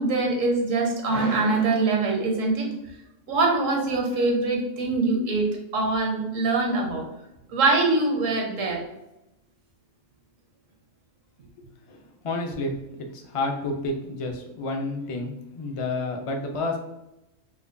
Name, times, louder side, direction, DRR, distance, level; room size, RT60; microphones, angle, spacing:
voice 1, 0.0-2.7 3.3-7.0 7.5-8.8, right 3 dB, 85° right, 1 dB, 1.2 m, -23 dB
voice 2, 11.9-16.8, left 2 dB, 55° left, 3 dB, 0.3 m, -30 dB
4.9 x 2.2 x 2.5 m, 0.90 s
omnidirectional pair, 1.3 m